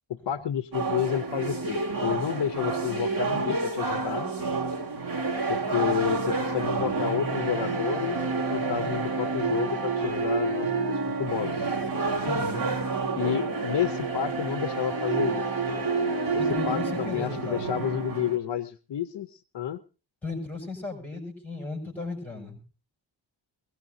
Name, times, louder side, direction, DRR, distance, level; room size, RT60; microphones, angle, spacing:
voice 1, 0.1-4.3 5.5-8.2 8.5-11.8 13.2-15.5 16.3-19.8, left 10 dB, 60° left, 11 dB, 0.7 m, -30 dB
sound 1, 0.7-18.4, right 3 dB, 45° right, 3.2 m, -29 dB
voice 2, 12.2-12.9 16.4-17.7 20.2-22.6, left 3 dB, 5° left, 3 dB, 6.2 m, -36 dB
22.0 x 17.5 x 2.6 m, 0.33 s
wide cardioid pair, 150°, 46 cm